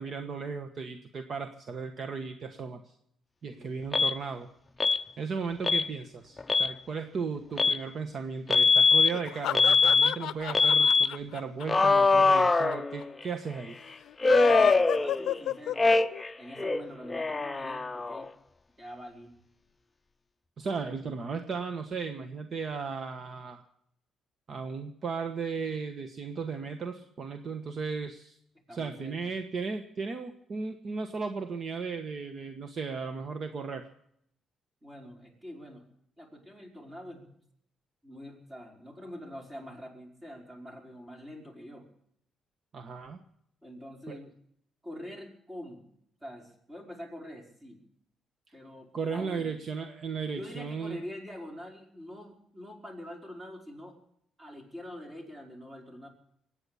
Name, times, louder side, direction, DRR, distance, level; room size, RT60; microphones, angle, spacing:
voice 1, 0.0-2.9 3.4-4.5 5.2-13.8 20.6-23.6 24.5-28.4 28.7-33.9 42.7-43.2 44.1-44.2 48.9-51.0, right 5 dB, 50° right, 7 dB, 1.3 m, -36 dB
Alarm, 3.9-4.1 4.8-5.0 5.6-5.9 6.4-6.7 7.6-7.8 8.5-9.1 9.5-10.1 10.5-11.1 11.7-13.2 14.2-15.4 15.7-16.3 16.6-18.3, left 4 dB, 20° left, 0.6 m, -23 dB
sound 1, 9.1-12.4 12.7-12.8 13.0-13.1 14.1-16.2, left 12 dB, 80° left, 0.5 m, -31 dB
voice 2, 14.4-15.9 16.4-18.3 18.8-19.3 28.7-29.3 34.8-35.8 36.2-37.3 38.0-41.8 43.6-44.3 44.8-45.8 46.2-47.8 48.5-49.6 50.3-54.0 54.4-56.1, equal, 20° right, 1 dB, 5.1 m, -45 dB
23.0 x 9.1 x 7.0 m, 0.72 s
cardioid pair, 90°, 0 cm